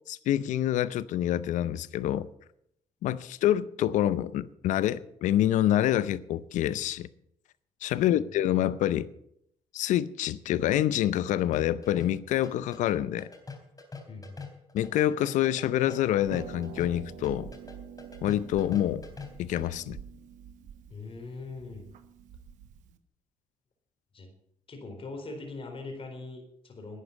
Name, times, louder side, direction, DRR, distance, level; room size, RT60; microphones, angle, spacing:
voice 1, 0.1-2.3 3.0-7.1 7.8-9.1 9.7-13.3 14.7-17.5 18.2-19.1 19.4-20.0, left 12 dB, 75° left, 0.6 m, -27 dB
sound 1, 11.4-19.7, left 4 dB, 30° left, 4.0 m, -44 dB
voice 2, 14.1-14.4 20.9-21.8 24.1-24.3 24.7-27.0, left 3 dB, 45° left, 4.2 m, -41 dB
Harp, 16.2-23.0, right 8 dB, 80° right, 1.1 m, -46 dB
11.5 x 9.7 x 7.2 m
supercardioid pair, 60°, 13 cm